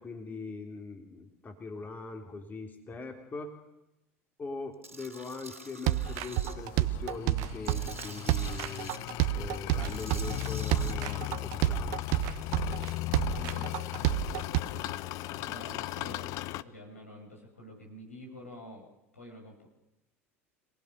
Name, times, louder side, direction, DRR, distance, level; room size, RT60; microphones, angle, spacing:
voice 1, 0.0-3.6 4.4-8.9 9.3-12.0, left 3 dB, 25° left, 3 dB, 3.3 m, -41 dB
Tools, 4.8-6.5 7.0-9.0 9.8-10.9, right 2 dB, 85° right, 3.7 m, -47 dB
sound 1, 5.9-14.6, right 15 dB, 55° right, 1.2 m, -29 dB
sound 2, 6.0-16.6, left 17 dB, 50° left, 0.8 m, -37 dB
voice 2, 13.3-18.9 19.1-19.7, left 1 dB, 85° left, 0 dB, 7.5 m, -48 dB
26.5 x 19.5 x 6.7 m, 0.91 s
figure-of-eight pair, 70°, 7 cm